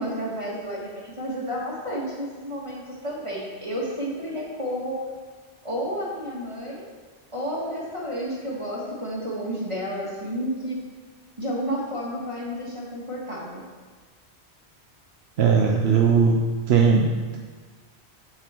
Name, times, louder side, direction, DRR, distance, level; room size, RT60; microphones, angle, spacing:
voice 1, 0.0-5.0 5.6-6.9 7.3-10.8 11.4-13.6, equal, 25° right, -5 dB, 2.0 m, -31 dB
voice 2, 15.4-16.4 16.7-17.4, right 5 dB, 70° right, 1 dB, 0.9 m, -19 dB
7.7 x 7.6 x 4.5 m, 1.5 s
omnidirectional pair, 1.1 m